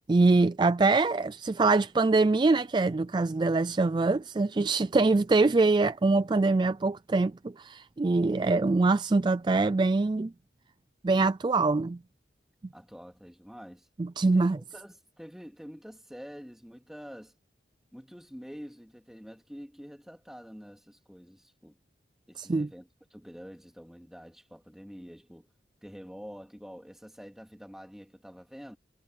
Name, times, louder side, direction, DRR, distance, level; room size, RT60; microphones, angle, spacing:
voice 1, 0.1-10.3 11.0-12.0 14.0-14.6 22.4-22.7, right 3 dB, 25° right, 0.4 m, -24 dB
voice 2, 12.7-13.9 14.2-17.3 17.9-21.8 22.3-25.5 25.8-28.8, equal, ahead, 2.4 m, -47 dB
head